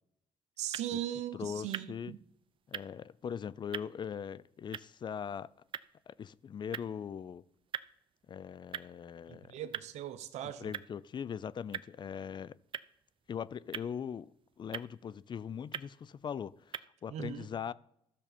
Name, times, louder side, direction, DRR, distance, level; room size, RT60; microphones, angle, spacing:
sound 1, 0.6-16.8, right 8 dB, 50° right, 0.4 m, -47 dB
voice 1, 0.6-2.2 9.3-10.7 17.1-17.5, right 11 dB, 75° right, 0.8 m, -39 dB
voice 2, 1.3-2.1 2.7-5.5 6.1-7.4 8.3-9.5 10.4-12.6 13.3-14.3 14.6-17.7, left 7 dB, 40° left, 0.4 m, -40 dB
12.5 x 6.7 x 4.2 m
supercardioid pair, 75°, 12 cm